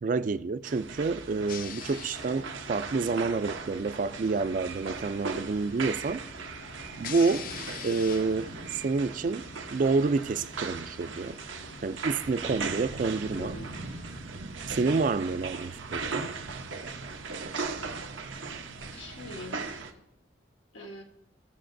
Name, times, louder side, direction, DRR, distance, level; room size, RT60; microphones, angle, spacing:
voice 1, 0.0-6.2 7.0-7.5 7.8-11.4 11.8-13.6 14.7-16.3, right 4 dB, 45° right, 0.3 m, -28 dB
sound 1, 0.6-19.9, right 4 dB, 85° right, 0.9 m, -38 dB
sound 2, 1.5-14.2, left 6 dB, 45° left, 0.4 m, -46 dB
voice 2, 13.2-13.8 18.9-19.9 20.7-21.0, left 1 dB, 85° left, 1.1 m, -43 dB
17.5 x 6.6 x 2.6 m
head